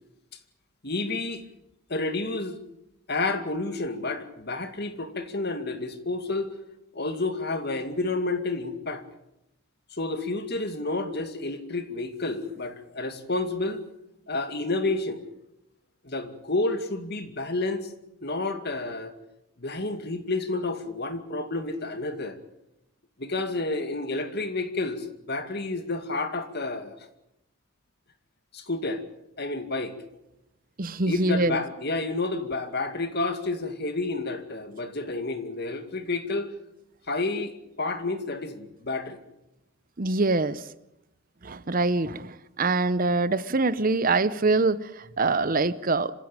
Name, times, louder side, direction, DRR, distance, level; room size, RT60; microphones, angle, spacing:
voice 1, 0.8-1.4 1.9-2.6 3.1-6.5 6.9-9.0 9.9-13.8 14.3-15.3 16.0-17.9 18.2-19.1 19.6-22.4 23.2-27.0 28.5-29.0 29.4-30.0 31.0-36.5 37.1-39.2, left 2 dB, 50° left, 2.3 m, -30 dB
voice 2, 30.8-31.5 40.0-40.6 41.4-46.1, right 3 dB, 40° right, 0.8 m, -24 dB
26.5 x 16.0 x 9.0 m
head